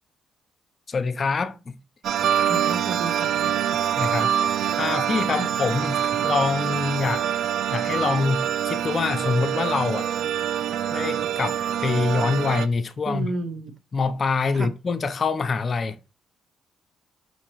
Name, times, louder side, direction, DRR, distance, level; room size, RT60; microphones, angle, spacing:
voice 1, 0.9-1.8 4.0-4.3 4.8-7.3 7.7-10.1 10.9-13.3 13.9-16.0, left 4 dB, 40° left, 0.5 m, -25 dB
sound 1, 2.0-12.7, right 9 dB, 70° right, 0.3 m, -25 dB
voice 2, 2.5-3.6 5.4-5.5 13.1-13.7 14.5-14.7, right 2 dB, 45° right, 0.7 m, -32 dB
5.7 x 2.9 x 2.9 m
cardioid pair, 90°, 0 cm